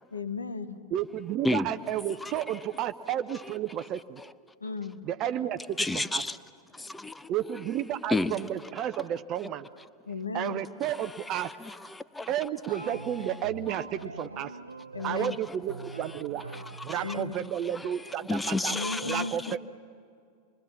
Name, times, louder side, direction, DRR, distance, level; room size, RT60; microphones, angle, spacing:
voice 1, 0.1-0.8 4.6-5.0 10.1-10.6 14.9-15.4 17.0-17.3 18.7-19.6, left 4 dB, 75° left, 1.4 m, -35 dB
voice 2, 0.9-4.2 5.0-6.2 7.3-9.7 10.3-11.5 12.3-14.6 15.0-16.4 16.8-18.8 19.0-19.6, right 11 dB, 35° right, 0.7 m, -32 dB
voice 3, 2.2-2.6 5.8-6.4 6.7-7.3 8.1-8.4 10.9-13.3 15.0-15.4 16.5-17.0 17.7-19.6, left 2 dB, 10° left, 0.8 m, -33 dB
sound 1, 12.7-15.3 15.7-17.5, right 3 dB, 80° right, 0.6 m, -43 dB
27.5 x 23.0 x 7.4 m
figure-of-eight pair, 90°, 0 cm